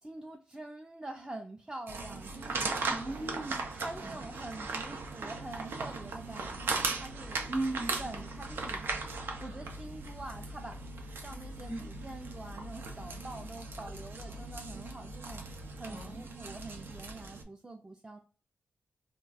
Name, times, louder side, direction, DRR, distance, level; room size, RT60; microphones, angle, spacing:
voice 1, 0.0-2.8 3.7-7.4 7.9-8.9 9.4-10.9 11.2-15.4 15.8-18.2, right 2 dB, 20° right, 0.4 m, -45 dB
sound 1, 1.9-17.4, right 3 dB, 75° right, 0.5 m, -38 dB
voice 2, 2.9-3.6 4.0-4.2 7.5-8.0 11.7-11.9 15.8-16.2, right 2 dB, 35° right, 0.9 m, -36 dB
2.3 x 2.2 x 3.9 m
cardioid pair, 80°, 4 cm